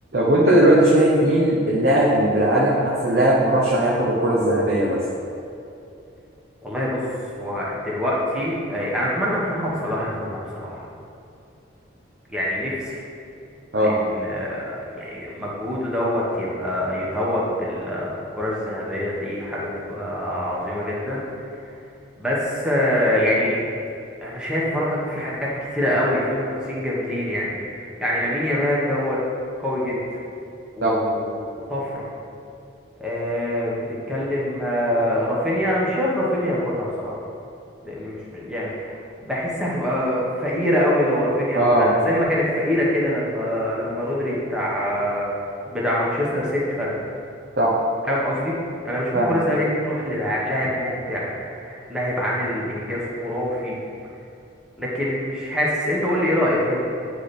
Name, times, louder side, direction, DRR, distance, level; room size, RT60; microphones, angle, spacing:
voice 1, 0.1-5.0 13.7-13.9 30.8-31.0 41.5-41.9 47.6-47.8 49.1-49.4, right 1 dB, 50° right, -5 dB, 0.8 m, -18 dB
voice 2, 6.6-7.0 7.4-10.9 12.3-13.0 13.8-21.5 22.2-23.5 24.2-29.2 29.6-30.0 30.8-31.3 31.6-32.1 33.0-37.2 37.8-45.3 45.7-47.0 48.0-48.5 48.8-53.8 54.8-56.8, left 1 dB, 5° right, -6 dB, 1.1 m, -25 dB
9.7 x 3.3 x 4.2 m, 2.7 s
head